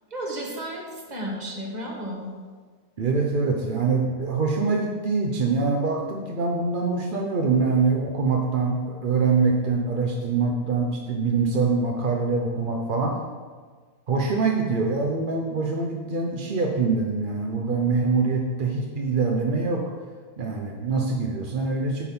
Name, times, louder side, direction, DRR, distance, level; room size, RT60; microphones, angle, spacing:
voice 1, 0.1-2.3, right 1 dB, 30° right, 0 dB, 1.2 m, -33 dB
voice 2, 3.0-13.2 14.1-19.9 20.4-22.1, right 4 dB, 55° right, 1 dB, 0.5 m, -24 dB
8.5 x 4.4 x 5.4 m, 1.5 s
omnidirectional pair, 1.8 m